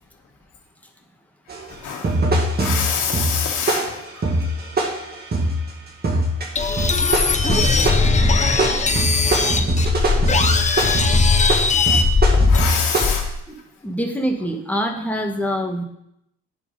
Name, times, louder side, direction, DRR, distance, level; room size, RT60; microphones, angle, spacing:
sound 1, 1.5-1.6 2.0-5.6 6.0-6.5 6.8-13.2, right 1 dB, 30° right, 1.9 m, -22 dB
voice 1, 1.6-4.4 6.8-6.9 10.8-10.9 11.7-13.7, left 6 dB, 85° left, 0 dB, 1.4 m, -28 dB
sound 2, 6.6-13.4, left 4 dB, 25° left, 0.7 m, -19 dB
voice 2, 13.8-15.8, equal, 5° left, 2 dB, 1.4 m, -24 dB
9.8 x 4.3 x 5.3 m, 0.78 s
cardioid pair, 90°, 30 cm